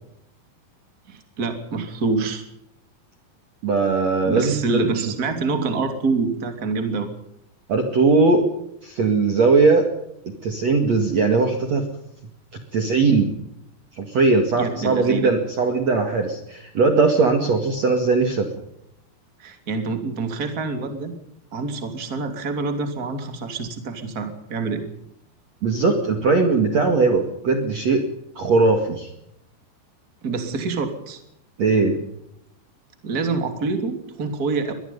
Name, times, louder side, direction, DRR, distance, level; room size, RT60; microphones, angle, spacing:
voice 1, 1.1-2.4 4.2-7.1 14.5-15.3 19.4-21.1 21.5-24.8 30.2-31.2 33.0-34.7, right 4 dB, 25° right, 6 dB, 2.7 m, -26 dB
voice 2, 3.6-4.9 7.7-8.5 8.8-9.9 10.4-11.9 12.7-13.3 14.0-18.5 25.6-28.0 28.4-29.1 31.6-32.0, right 4 dB, 45° right, 4 dB, 2.7 m, -19 dB
23.5 x 20.5 x 5.5 m, 0.79 s
omnidirectional pair, 5.1 m